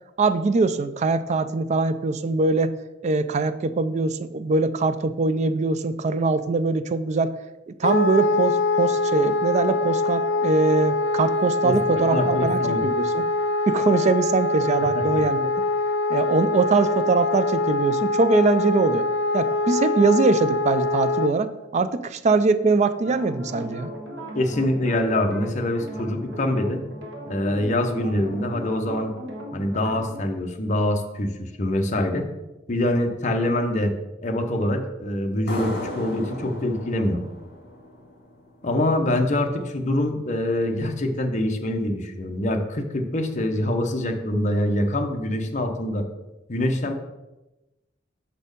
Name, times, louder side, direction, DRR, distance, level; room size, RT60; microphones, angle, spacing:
voice 1, 0.2-2.7 3.0-7.3 7.7-13.3 13.7-15.5 16.1-19.1 19.3-23.9, right 3 dB, 35° right, 12 dB, 0.3 m, -22 dB
Wind instrument woodwind instrument, 7.8-21.3, left 2 dB, 80° left, 0.6 m, -24 dB
voice 2, 11.6-12.8 14.9-15.0 24.3-26.8 27.3-29.1 29.5-32.3 32.7-33.9 34.2-37.2 38.6-46.0 46.5-46.9, left 1 dB, 40° left, 4 dB, 0.7 m, -24 dB
sound 1, 23.0-30.2, equal, 65° right, 1.3 m, -37 dB
sound 2, 35.5-38.8, left 1 dB, 60° left, 1.6 m, -36 dB
6.1 x 4.3 x 5.2 m, 1.0 s
head